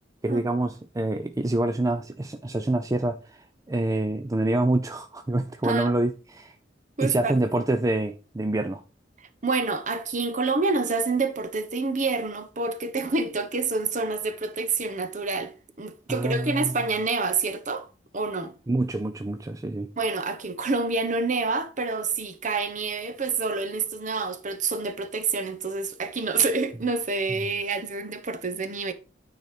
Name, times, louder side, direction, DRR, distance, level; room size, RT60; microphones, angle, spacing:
voice 1, 0.2-3.2 3.7-6.5 7.0-8.8 16.1-16.7 18.7-19.9, right 2 dB, 20° right, 0.4 m, -26 dB
voice 2, 7.0-7.4 9.4-17.9 18.1-18.5 20.0-28.9, right 4 dB, 45° right, 1.0 m, -27 dB
9.3 x 4.0 x 5.0 m
head